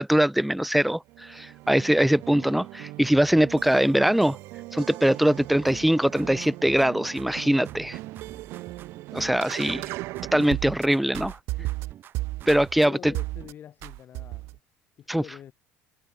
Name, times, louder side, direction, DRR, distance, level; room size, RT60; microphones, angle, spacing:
voice 1, 0.0-4.4 4.7-8.0 9.1-9.9 10.3-11.4 12.5-13.1 15.1-15.2, right 1 dB, ahead, 0.3 m, -22 dB
sound 1, 1.1-10.9 11.1-12.9 13.1-13.5 13.8-14.6, right 19 dB, 70° right, 0.4 m, -36 dB
sound 2, 5.7-7.4 7.7-9.4 9.7-11.4 11.7-13.5, right 11 dB, 50° right, 1.4 m, -46 dB
voice 2, 12.8-14.6 15.0-15.5, left 10 dB, 45° left, 4.7 m, -45 dB
cardioid pair, 110°, 5 cm